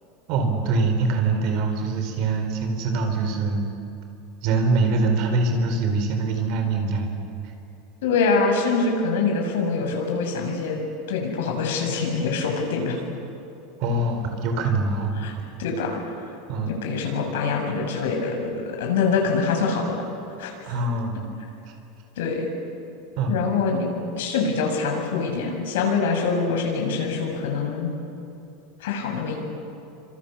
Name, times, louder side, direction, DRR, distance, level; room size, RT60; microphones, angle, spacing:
voice 1, 0.3-3.6 4.4-7.2 13.8-15.2 16.5-16.7 20.6-21.3 23.2-23.4, right 3 dB, 40° right, 5 dB, 4.3 m, -23 dB
voice 2, 8.0-10.8 11.1-13.0 15.2-15.3 15.6-16.0 16.7-20.0 20.4-20.5 22.2-22.5 23.3-23.9 24.2-27.9 28.8-29.4, left 4 dB, 80° left, 2 dB, 7.1 m, -24 dB
29.0 x 26.0 x 7.1 m, 2.7 s
supercardioid pair, 175°, 0 cm